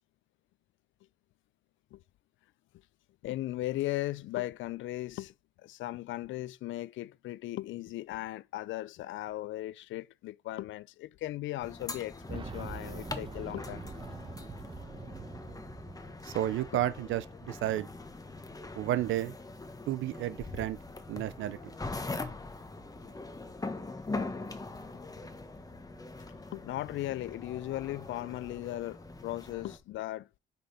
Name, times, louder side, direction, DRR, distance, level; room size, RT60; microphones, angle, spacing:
voice 1, 3.2-13.8 26.5-30.4, left 16 dB, 75° left, 0.4 m, -37 dB
sound 1, 11.6-29.8, left 3 dB, 20° left, 1.2 m, -42 dB
Boom, 12.3-17.0 17.3-17.4 18.5-18.6, right 4 dB, 25° right, 1.1 m, -44 dB
voice 2, 16.2-17.9 18.8-19.3 19.9-20.8 21.1-21.6, right 13 dB, 80° right, 0.6 m, -31 dB
5.4 x 4.0 x 5.7 m
cardioid pair, 90°, 20 cm